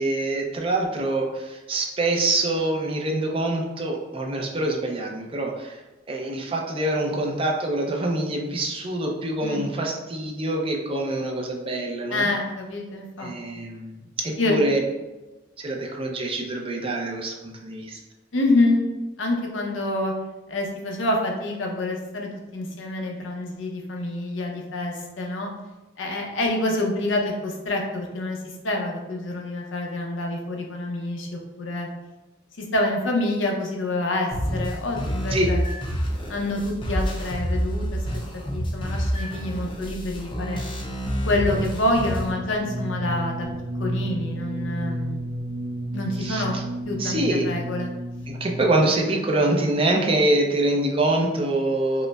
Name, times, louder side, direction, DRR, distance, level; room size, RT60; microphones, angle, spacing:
voice 1, 0.0-5.8 6.1-12.3 13.2-14.8 15.6-18.0 35.3-35.5 46.2-46.6 47.0-47.4 48.3-52.1, right 2 dB, 30° right, 0 dB, 0.5 m, -25 dB
voice 2, 12.1-13.6 14.4-14.6 18.3-18.8 19.2-20.1 20.5-25.5 26.0-28.4 28.6-31.3 31.6-31.9 32.6-35.6 36.3-38.0 38.5-40.6 41.3-43.5 43.8-45.2 45.9-46.5 46.9-47.9, left 2 dB, 80° left, 1 dB, 0.7 m, -27 dB
sound 1, 34.3-42.3, equal, 25° left, 0.5 m, -28 dB
sound 2, 41.3-49.0, right 1 dB, 70° right, 0.6 m, -32 dB
5.0 x 2.1 x 2.2 m, 1.1 s
head